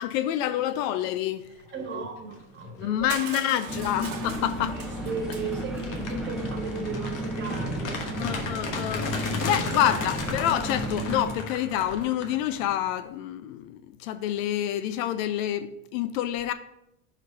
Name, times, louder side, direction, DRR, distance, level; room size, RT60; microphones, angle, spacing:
voice 1, 0.0-1.5 2.8-4.8 8.2-16.5, left 11 dB, 75° left, 0.6 m, -28 dB
voice 2, 1.6-3.1 3.3-3.4 4.7-8.1 9.8-10.0, right 5 dB, 25° right, 1.4 m, -36 dB
sound 1, 2.1-2.4 2.8-12.9, left 3 dB, 50° left, 1.2 m, -35 dB
Crushing, 3.1-6.0, right 8 dB, 80° right, 1.1 m, -41 dB
sound 2, 3.7-11.3, right 1 dB, ahead, 0.5 m, -33 dB
5.0 x 4.1 x 5.5 m
supercardioid pair, 135°, 40 cm